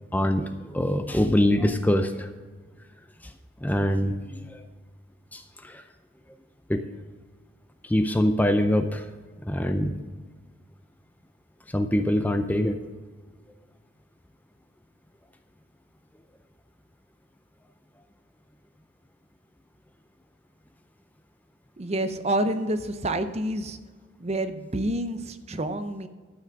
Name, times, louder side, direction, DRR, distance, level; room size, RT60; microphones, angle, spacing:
voice 1, 0.1-2.3 3.6-4.6 5.3-5.8 6.7-6.8 7.8-9.1 9.4-10.0 11.7-12.8, left 1 dB, 10° left, 8 dB, 0.5 m, -24 dB
voice 2, 21.8-23.8 24.2-26.1, right 1 dB, 30° right, 10 dB, 0.6 m, -28 dB
12.5 x 6.0 x 5.9 m, 1.4 s
head